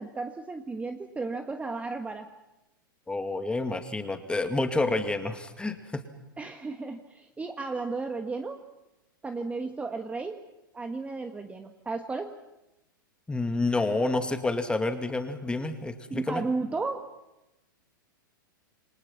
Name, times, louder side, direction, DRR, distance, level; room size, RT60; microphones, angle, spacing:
voice 1, 0.0-2.3 6.4-8.6 9.2-10.4 10.7-12.3 16.1-17.1, right 3 dB, 10° right, 6 dB, 1.4 m, -34 dB
voice 2, 3.1-6.0 13.3-16.4, left 2 dB, 10° left, 7 dB, 2.3 m, -29 dB
28.5 x 23.5 x 6.0 m, 0.96 s
hypercardioid pair, 105°, 11 cm